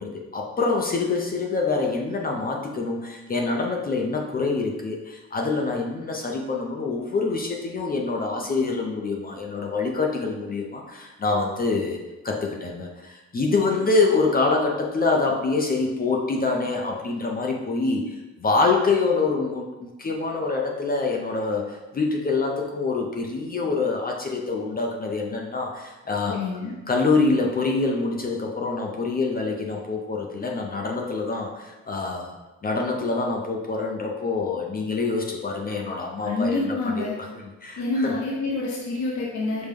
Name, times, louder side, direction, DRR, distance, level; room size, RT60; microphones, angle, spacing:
voice 1, 0.0-12.0 12.2-26.4 26.9-32.3 32.6-38.1, left 3 dB, 30° left, 0 dB, 0.5 m, -25 dB
voice 2, 26.3-26.7 36.2-37.1 37.8-39.7, left 2 dB, 70° left, -4 dB, 0.8 m, -27 dB
5.1 x 2.1 x 3.5 m, 1.1 s
cardioid pair, 90°, 30 cm